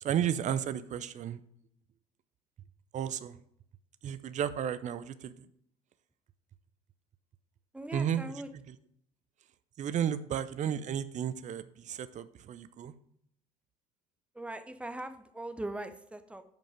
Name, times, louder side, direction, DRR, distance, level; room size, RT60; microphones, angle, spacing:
voice 1, 0.0-1.4 2.9-3.4 4.0-5.3 7.9-8.2 9.8-12.9, right 9 dB, 40° right, 14 dB, 0.6 m, -33 dB
voice 2, 7.7-8.5 14.3-16.4, right 1 dB, 5° right, 9 dB, 0.8 m, -40 dB
7.7 x 5.2 x 5.0 m, 0.70 s
hypercardioid pair, 60°, 19 cm